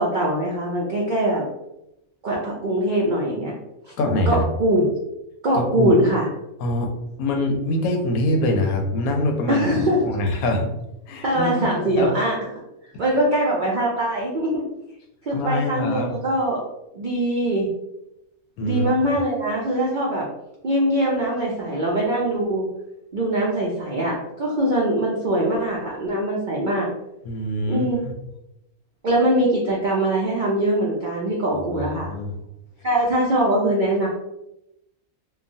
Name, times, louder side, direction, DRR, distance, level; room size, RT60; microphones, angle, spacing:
voice 1, 0.0-1.4 2.2-3.5 4.3-4.8 5.4-6.3 9.5-10.1 11.2-12.3 13.0-14.6 15.2-16.6 16.9-17.7 18.6-20.2 20.6-22.7 23.1-26.9 27.7-28.0 29.0-32.1 32.8-34.1, right 1 dB, 70° right, -4 dB, 0.4 m, -22 dB
voice 2, 4.0-4.5 5.5-5.9 6.6-6.9 7.2-9.6 10.0-10.7 11.1-12.1 15.3-16.1 18.6-18.8 27.2-28.1 32.1-32.3, left 1 dB, 90° left, 3 dB, 1.1 m, -24 dB
3.0 x 2.2 x 2.6 m, 0.87 s
omnidirectional pair, 1.5 m